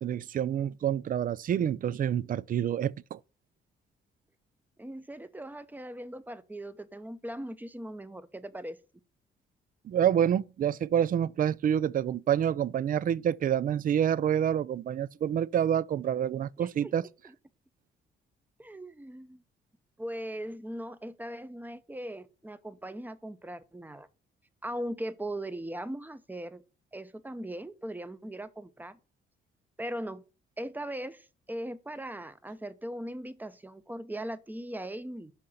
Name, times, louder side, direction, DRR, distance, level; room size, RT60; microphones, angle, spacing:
voice 1, 0.0-3.2 9.8-17.0, right 9 dB, 45° right, 0.4 m, -27 dB
voice 2, 4.8-8.8 16.6-16.9 17.2-17.4 18.6-19.4 20.0-24.1 24.6-26.6 26.9-29.0 29.8-30.2 30.6-35.3, right 1 dB, 10° right, 0.7 m, -39 dB
5.8 x 5.6 x 6.4 m
cardioid pair, 90°, 20 cm